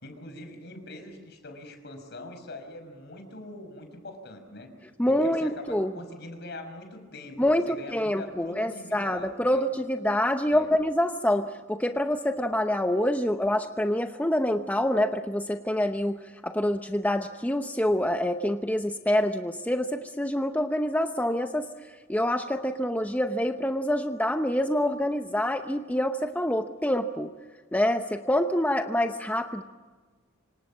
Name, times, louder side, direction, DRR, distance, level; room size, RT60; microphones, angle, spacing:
voice 1, 0.0-4.7 5.1-9.7 10.5-10.7, left 2 dB, 55° left, 7 dB, 5.8 m, -43 dB
voice 2, 5.0-5.9 7.4-27.3 27.7-29.6, left 1 dB, 10° left, 6 dB, 0.9 m, -26 dB
27.0 x 26.0 x 7.4 m, 1.4 s
head